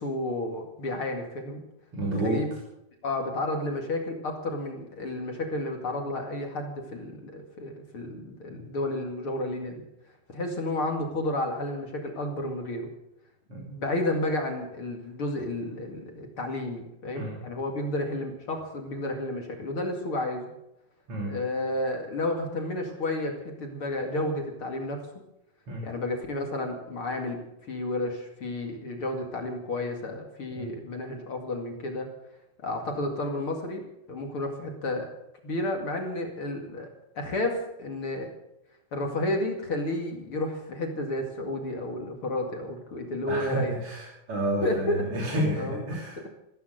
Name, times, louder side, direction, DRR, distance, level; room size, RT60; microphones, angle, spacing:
voice 1, 0.0-1.6 2.2-2.5 3.0-9.8 10.3-12.9 13.5-20.4 21.3-25.1 25.8-27.4 27.7-32.1 32.6-33.8 34.1-35.1 35.4-38.3 38.9-43.8 44.6-45.0 45.6-45.8, left 1 dB, 40° left, 2 dB, 2.5 m, -31 dB
voice 2, 1.9-2.5 8.5-8.6 13.5-13.7 17.1-17.4 21.1-21.4 25.7-25.9 30.5-30.7 43.3-46.3, right 1 dB, 35° right, -3 dB, 3.7 m, -30 dB
15.0 x 14.5 x 6.5 m, 0.85 s
omnidirectional pair, 4.5 m